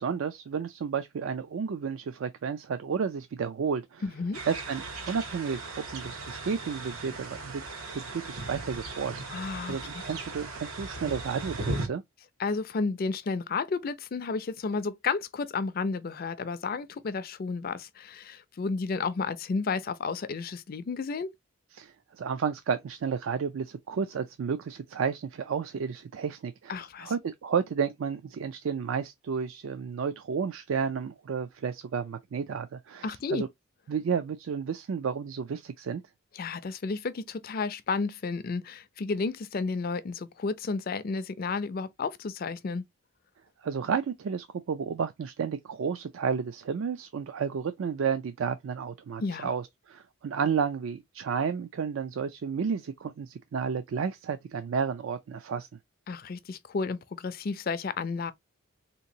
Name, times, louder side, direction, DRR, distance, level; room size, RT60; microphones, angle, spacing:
voice 1, 0.0-4.0 4.5-7.6 7.9-12.0 21.7-33.5 33.9-36.0 43.6-55.7, right 6 dB, 70° right, 0.3 m, -32 dB
voice 2, 4.0-4.4 9.3-10.0 12.4-21.3 26.7-27.1 33.0-33.4 36.3-42.8 49.2-49.5 56.1-58.3, left 4 dB, 45° left, 0.4 m, -32 dB
sound 1, 4.3-11.9, right 2 dB, 90° right, 1.2 m, -37 dB
3.6 x 2.9 x 2.6 m
head